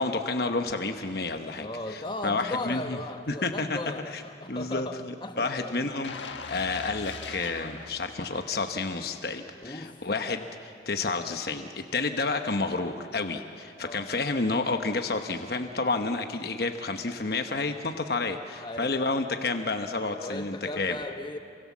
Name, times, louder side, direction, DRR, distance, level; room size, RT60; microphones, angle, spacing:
voice 1, 0.0-3.0 3.3-3.8 4.1-4.2 4.5-4.9 5.4-20.9, left 3 dB, 55° left, 6 dB, 1.0 m, -30 dB
voice 2, 1.6-5.8 9.6-10.0 11.3-11.4 13.8-14.1 18.6-18.9 20.1-21.4, left 1 dB, 25° left, 7 dB, 1.2 m, -37 dB
sound 1, 6.0-9.0 9.4-9.6, left 4 dB, 80° left, 1.5 m, -41 dB
28.0 x 24.0 x 7.3 m, 2.4 s
head